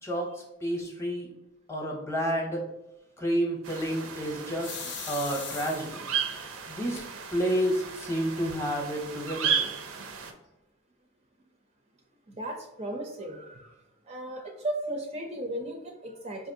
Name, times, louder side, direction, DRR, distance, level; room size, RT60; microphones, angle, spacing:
voice 1, 0.0-1.3 1.7-2.6 3.2-4.8 5.1-6.1 6.7-9.7, equal, 15° left, 0 dB, 0.7 m, -30 dB
sound 1, 3.6-10.3, right 7 dB, 85° right, 0.5 m, -34 dB
sound 2, 4.6-6.2 7.0-7.1 7.5-7.6 7.8-8.4, left 8 dB, 55° left, 0.4 m, -39 dB
voice 2, 12.3-13.7 14.1-16.5, right 1 dB, 30° right, 1 dB, 0.4 m, -35 dB
4.9 x 2.5 x 2.6 m, 0.94 s
head